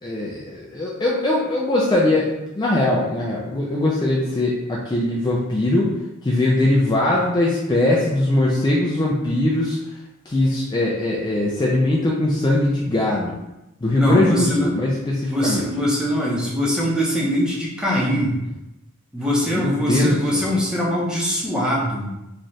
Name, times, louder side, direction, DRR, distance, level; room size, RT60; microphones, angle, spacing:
voice 1, 0.0-5.9 6.2-9.8 10.3-13.4 13.8-15.7 19.5-20.5, left 1 dB, 20° left, -4 dB, 0.4 m, -21 dB
voice 2, 13.9-14.7 15.3-18.4 19.1-22.1, equal, 5° right, -5 dB, 0.8 m, -22 dB
3.1 x 2.4 x 4.1 m, 0.93 s
head